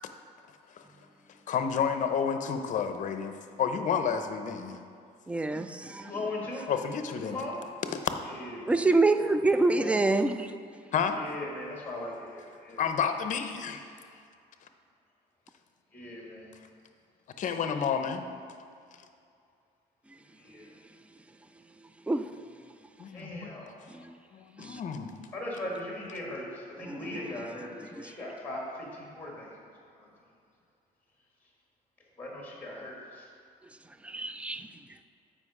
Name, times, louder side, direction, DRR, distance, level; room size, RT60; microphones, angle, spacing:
voice 1, 1.5-4.8 6.7-7.4 7.8-8.0 10.9-11.2 12.8-13.9 17.4-18.3 23.0-23.5 24.3-25.1, left 7 dB, 50° left, 7 dB, 0.6 m, -30 dB
voice 2, 5.3-6.1 8.7-10.5 22.1-22.3 23.9-24.1 24.6-24.8 26.8-27.4 27.8-28.1 34.0-34.7, right 3 dB, 5° right, 9 dB, 0.3 m, -27 dB
voice 3, 6.0-6.7 7.2-7.6 8.3-8.8 9.2-10.1 11.2-12.8 15.9-16.5 20.4-20.6 23.1-23.8 25.3-29.5 30.0-30.1 32.2-33.3, left 1 dB, 10° left, -2 dB, 1.7 m, -39 dB
7.6 x 5.1 x 4.8 m, 2.4 s
cardioid pair, 110°, 17 cm